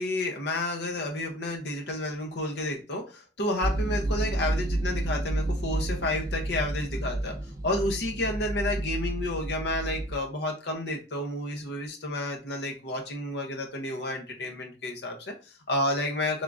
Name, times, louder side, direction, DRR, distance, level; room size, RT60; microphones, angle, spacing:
voice 1, 0.0-16.4, left 1 dB, 70° left, 1 dB, 0.8 m, -31 dB
sound 1, 3.6-10.2, right 1 dB, 20° right, 0.4 m, -30 dB
3.6 x 3.5 x 2.5 m, 0.32 s
head